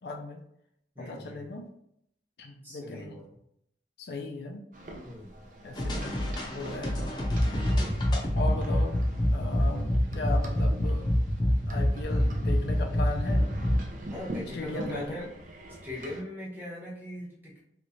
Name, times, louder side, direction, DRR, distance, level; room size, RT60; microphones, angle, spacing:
voice 1, 0.0-0.4 1.0-1.7 2.4-3.2 4.0-4.6 5.6-6.3 6.5-7.1 8.3-9.0 9.3-11.2 11.7-13.5 14.4-15.2, left 3 dB, 70° left, 2 dB, 0.5 m, -37 dB
voice 2, 0.9-1.4 2.6-3.2 5.0-5.4 14.1-15.3 15.8-17.6, left 1 dB, 10° right, -6 dB, 1.0 m, -40 dB
sound 1, 4.7-16.2, right 1 dB, 45° right, 0.5 m, -43 dB
sound 2, 5.7-13.8, left 1 dB, 25° left, 0.6 m, -26 dB
3.2 x 3.1 x 2.6 m, 0.74 s
head